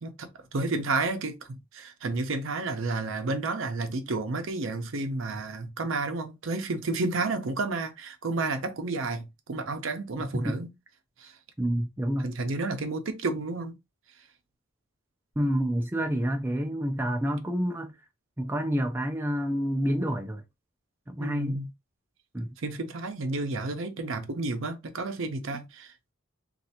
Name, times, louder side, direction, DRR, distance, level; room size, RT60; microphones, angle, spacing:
voice 1, 0.0-10.7 11.2-11.3 12.2-13.8 21.2-21.7 22.6-25.9, right 3 dB, 65° right, 0.6 m, -31 dB
voice 2, 11.6-12.3 15.4-17.9 18.4-20.4 21.1-21.6 22.3-22.5, equal, 10° right, 0.4 m, -28 dB
3.2 x 2.4 x 2.8 m
head